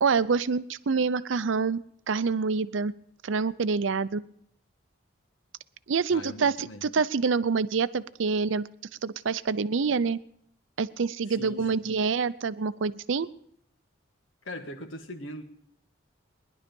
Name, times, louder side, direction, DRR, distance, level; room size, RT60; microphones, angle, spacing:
voice 1, 0.0-2.9 3.2-4.2 5.9-8.7 9.0-10.2 10.8-13.3, right 5 dB, 80° right, 16 dB, 0.5 m, -26 dB
voice 2, 6.1-6.8 11.3-12.0 14.4-15.5, left 1 dB, 85° left, 7 dB, 1.5 m, -40 dB
19.5 x 11.0 x 5.3 m, 0.70 s
head